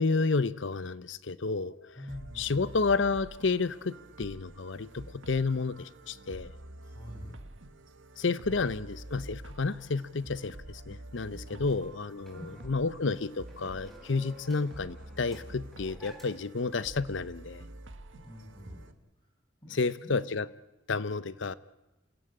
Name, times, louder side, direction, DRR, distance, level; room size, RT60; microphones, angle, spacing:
voice 1, 0.0-1.9 2.4-6.5 8.2-17.6 19.7-20.5 20.9-21.5, left 4 dB, 70° left, 18 dB, 0.8 m, -31 dB
voice 2, 2.0-2.8 6.8-7.4 11.5-11.7 12.3-12.7 18.1-18.9 19.6-20.2, equal, 25° left, 0 dB, 7.8 m, -47 dB
sound 1, 2.1-18.9, right 1 dB, 75° right, 1.6 m, -48 dB
sound 2, 11.6-16.6, left 1 dB, ahead, 4.3 m, -54 dB
29.0 x 16.5 x 8.7 m, 1.0 s
head